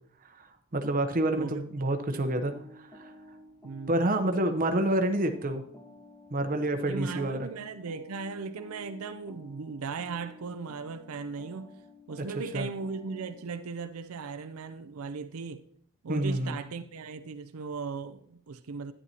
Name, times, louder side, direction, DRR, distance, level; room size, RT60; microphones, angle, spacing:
voice 1, 0.7-2.5 2.8-3.1 3.9-5.6 6.3-7.4 12.5-12.7 16.1-16.6, right 1 dB, 40° right, 0.8 m, -28 dB
voice 2, 1.2-1.7 2.1-2.3 3.6-4.0 6.8-11.7 12.1-15.6 16.0-18.9, right 4 dB, 90° right, 0.5 m, -38 dB
sound 1, 2.2-13.5, left 1 dB, 15° left, 1.3 m, -52 dB
11.0 x 10.0 x 2.8 m
head